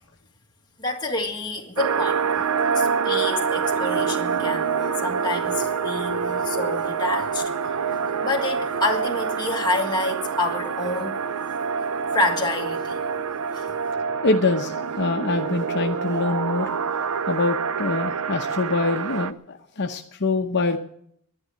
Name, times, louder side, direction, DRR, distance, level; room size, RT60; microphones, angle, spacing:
voice 1, 0.8-2.2 2.8-7.5 8.2-11.1 12.1-13.0 13.5-13.6, left 2 dB, 20° left, 1.8 m, -27 dB
sound 1, 1.8-19.3, right 6 dB, 70° right, 0.6 m, -26 dB
voice 2, 14.2-16.7 17.3-20.8, left 3 dB, 50° left, 0.9 m, -24 dB
11.0 x 11.0 x 9.0 m
head